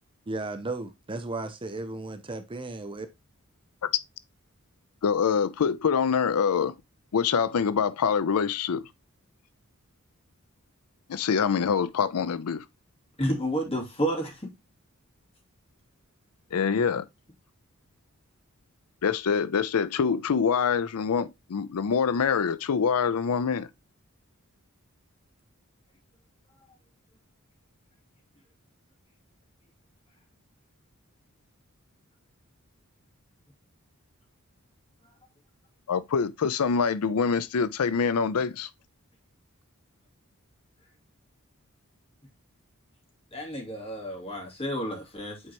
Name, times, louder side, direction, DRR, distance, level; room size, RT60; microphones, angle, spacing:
voice 1, 0.3-3.1, right 2 dB, 25° right, 0.6 m, -35 dB
voice 2, 5.0-6.7 7.1-8.9 11.1-12.7 16.5-17.1 19.0-23.7 35.9-38.7, left 6 dB, 90° left, 0.5 m, -25 dB
voice 3, 13.2-14.5 43.3-45.5, equal, 25° left, 2.8 m, -31 dB
8.7 x 4.5 x 2.9 m
head